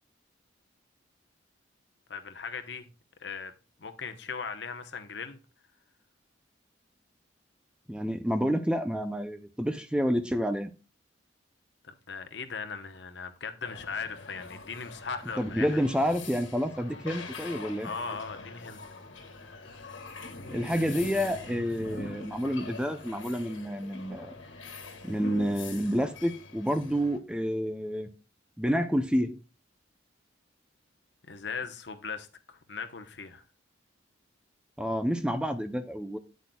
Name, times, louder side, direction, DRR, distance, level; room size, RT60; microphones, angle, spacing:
voice 1, 2.1-2.9 3.2-3.5 3.8-5.4 11.8-15.8 17.8-18.8 31.3-33.4, left 5 dB, 65° left, 0.9 m, -38 dB
voice 2, 7.9-10.7 15.4-17.9 20.5-24.3 25.0-28.1 28.6-29.4 34.8-36.2, equal, 5° right, 0.5 m, -29 dB
sound 1, 13.6-27.2, left 3 dB, 90° left, 1.7 m, -43 dB
9.4 x 8.0 x 2.3 m
head